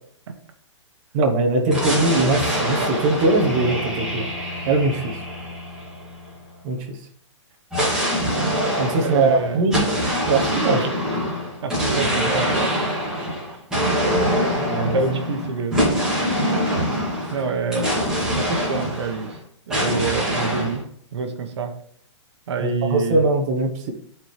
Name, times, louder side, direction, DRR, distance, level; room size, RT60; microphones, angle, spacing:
voice 1, 1.1-4.3 4.7-5.1 6.6-7.0 8.8-9.8 10.3-10.8 14.6-15.0 22.6-23.9, right 3 dB, 30° right, 2 dB, 0.9 m, -21 dB
sound 1, 1.7-6.4 7.7-19.4 19.7-20.8, equal, 5° right, 2.1 m, -24 dB
voice 2, 9.0-9.9 10.8-10.9 11.6-12.7 13.8-14.0 14.4-14.5 14.9-15.8 17.3-18.1 18.4-19.4 19.7-20.9 21.1-21.7 22.5-23.2, right 4 dB, 60° right, 6 dB, 1.1 m, -27 dB
12.5 x 4.4 x 3.2 m, 0.62 s
hypercardioid pair, 170°, 16 cm